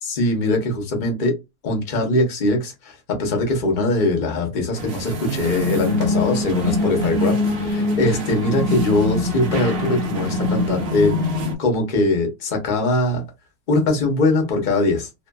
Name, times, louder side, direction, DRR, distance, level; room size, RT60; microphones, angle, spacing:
voice 1, 0.0-1.3 1.6-13.2 13.7-15.3, left 2 dB, 40° left, 3 dB, 0.7 m, -22 dB
sound 1, 4.8-11.5, left 2 dB, 70° right, 0.5 m, -23 dB
2.6 x 2.4 x 2.2 m, 0.23 s
omnidirectional pair, 1.9 m